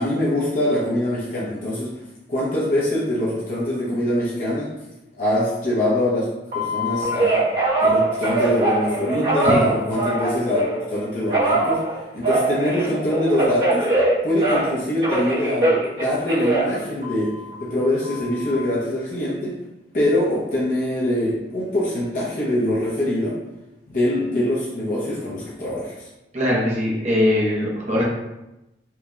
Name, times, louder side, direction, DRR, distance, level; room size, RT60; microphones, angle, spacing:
voice 1, 0.0-1.9 2.3-4.7 5.2-6.3 6.5-7.4 7.8-11.9 12.1-13.9 14.2-19.6 19.9-23.4 23.9-26.1, left 1 dB, 45° left, -7 dB, 0.7 m, -23 dB
Telephone, 6.5-10.8 11.3-14.8 15.0-17.5 18.0-18.5, right 2 dB, 60° right, 1.3 m, -22 dB
voice 2, 26.3-28.0, left 1 dB, 40° right, -4 dB, 1.0 m, -21 dB
4.6 x 2.8 x 2.3 m, 0.95 s
head